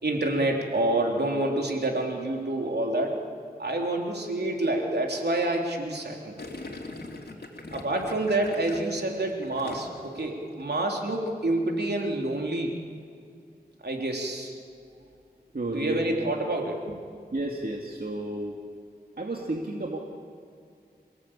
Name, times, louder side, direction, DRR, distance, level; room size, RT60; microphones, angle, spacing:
voice 1, 0.0-3.2 3.6-6.3 7.7-12.7 13.8-14.5 15.7-17.0, right 2 dB, 80° right, 1 dB, 3.5 m, -28 dB
Gurgling, 6.4-10.2 10.4-10.8, left 2 dB, 70° left, 3.2 m, -42 dB
voice 2, 15.5-16.2 17.3-18.6 19.2-20.0, right 1 dB, 65° right, 0 dB, 2.3 m, -31 dB
28.0 x 17.5 x 8.8 m, 2.3 s
wide cardioid pair, 55°, 17 cm